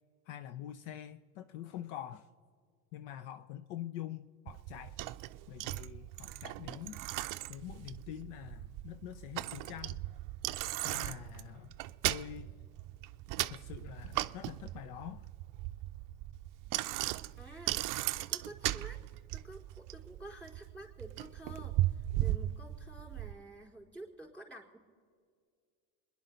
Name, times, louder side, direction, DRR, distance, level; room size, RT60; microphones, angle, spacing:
voice 1, 0.3-2.3 2.9-5.0 5.5-7.0 7.5-10.0 10.8-11.8 12.0-12.5 13.5-15.3, left 11 dB, 60° left, 0.7 m, -45 dB
Bicycle, 4.5-23.3, right 16 dB, 45° right, 0.5 m, -37 dB
voice 2, 17.4-17.9 18.3-19.0 19.3-24.8, right 1 dB, 5° left, 4.0 m, -50 dB
27.0 x 10.5 x 4.0 m
hypercardioid pair, 85°, 46 cm